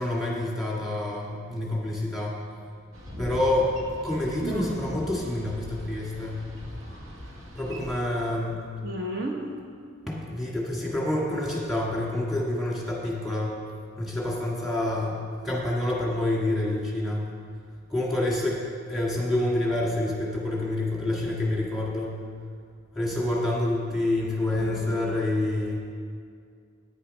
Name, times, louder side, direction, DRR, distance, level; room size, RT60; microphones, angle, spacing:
voice 1, 0.0-2.4 3.2-3.7 4.0-6.5 7.6-8.6 10.1-13.6 14.0-15.2 15.4-17.3 17.9-18.6 18.9-22.2 23.0-25.9, left 1 dB, ahead, -5 dB, 1.8 m, -27 dB
Boat Water vehicle, 2.9-8.0, equal, 80° right, 1.5 m, -40 dB
voice 2, 4.4-4.8 8.8-9.5 24.5-25.1, right 1 dB, 50° right, 0 dB, 1.1 m, -33 dB
9.9 x 9.0 x 5.5 m, 2.2 s
head